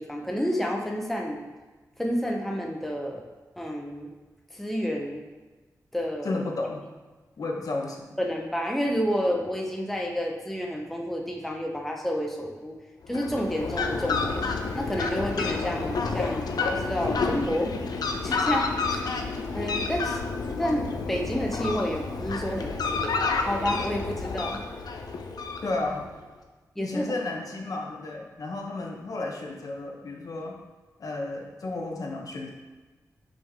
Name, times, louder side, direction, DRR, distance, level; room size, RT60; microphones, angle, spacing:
voice 1, 0.0-1.4 2.0-3.2 3.6-4.1 4.5-5.2 5.9-6.3 8.2-12.8 13.1-14.5 14.7-17.7 18.2-19.0 19.5-20.2 20.6-24.6 26.8-27.1, equal, 5° left, 0 dB, 0.6 m, -30 dB
voice 2, 6.2-6.8 7.4-8.2 25.6-26.0 26.8-30.6 31.0-32.5, left 2 dB, 60° left, 1 dB, 0.9 m, -32 dB
Fowl, 13.0-26.1, left 4 dB, 85° left, 0.5 m, -30 dB
5.4 x 5.2 x 3.5 m, 1.2 s
wide cardioid pair, 120°, 7 cm